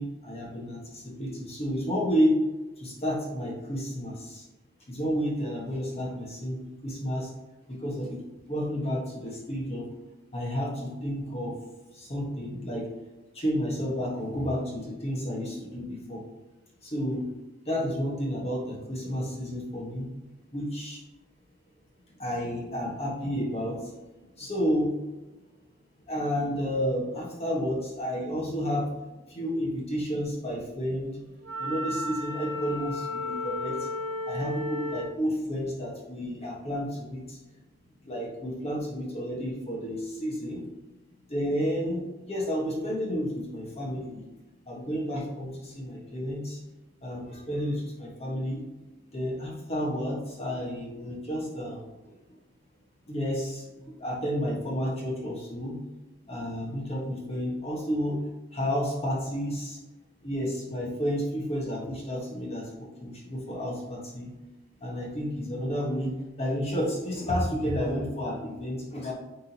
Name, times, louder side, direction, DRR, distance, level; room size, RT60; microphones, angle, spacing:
voice 1, 0.0-2.3 2.8-4.4 4.9-7.3 7.7-8.2 8.5-9.9 10.3-11.5 11.9-12.9 13.3-16.2 16.8-17.2 17.7-20.1 20.5-21.0 22.2-24.9 26.1-28.9 29.3-31.1 31.6-33.9 34.3-37.4 38.0-40.6 41.3-44.2 44.7-46.6 47.0-48.6 49.1-51.8 53.1-55.8 56.3-58.2 58.5-59.8 60.2-64.3 64.8-69.1, equal, 30° left, -2 dB, 1.4 m, -31 dB
Wind instrument woodwind instrument, 31.4-35.2, left 2 dB, 50° right, 1.2 m, -33 dB
9.7 x 3.7 x 2.9 m, 1.1 s
head